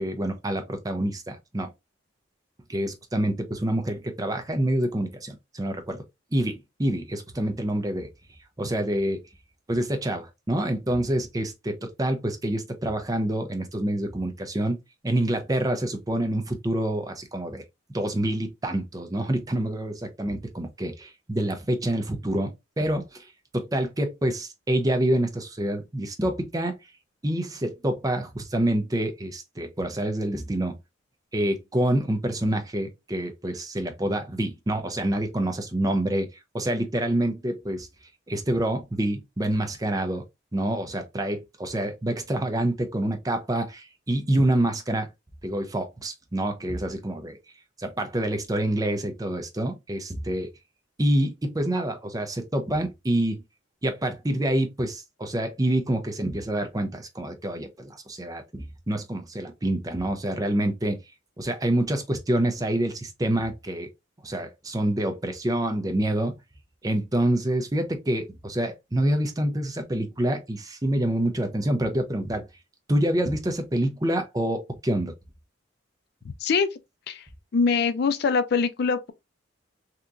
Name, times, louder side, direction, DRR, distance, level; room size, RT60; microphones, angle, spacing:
voice 1, 0.0-1.7 2.7-6.0 6.3-8.1 8.6-9.2 9.7-14.8 15.0-17.6 17.9-23.3 23.5-26.8 27.2-30.7 31.3-36.3 36.5-37.9 38.3-40.2 40.5-45.1 45.4-47.4 47.8-50.5 51.0-53.4 53.8-61.0 61.4-63.9 64.2-66.3 66.8-72.5 72.9-75.1, right 1 dB, 20° right, 0.6 m, -27 dB
voice 2, 77.5-79.1, left 5 dB, 55° left, 0.4 m, -23 dB
3.5 x 2.8 x 2.5 m
head